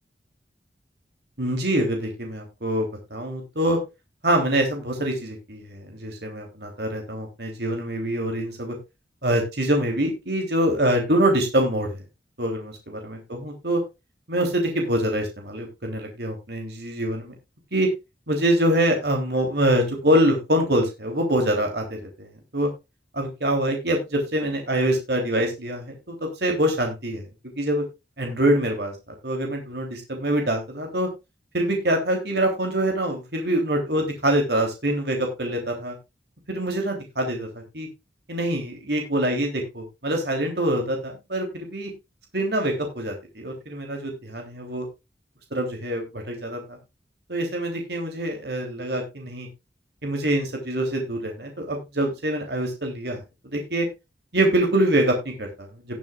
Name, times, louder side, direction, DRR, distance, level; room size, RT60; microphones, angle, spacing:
voice 1, 1.4-3.8 4.2-8.8 9.2-12.0 12.4-13.8 14.3-17.3 17.7-17.9 18.3-22.7 23.1-27.2 27.6-27.8 28.2-28.9 29.2-31.1 31.5-35.9 36.5-37.9 38.3-41.9 42.3-44.8 45.5-46.8 47.3-49.5 50.0-53.2 53.5-53.9 54.3-56.0, right 1 dB, 65° right, 2 dB, 3.3 m, -25 dB
19.0 x 7.2 x 2.4 m, 0.25 s
head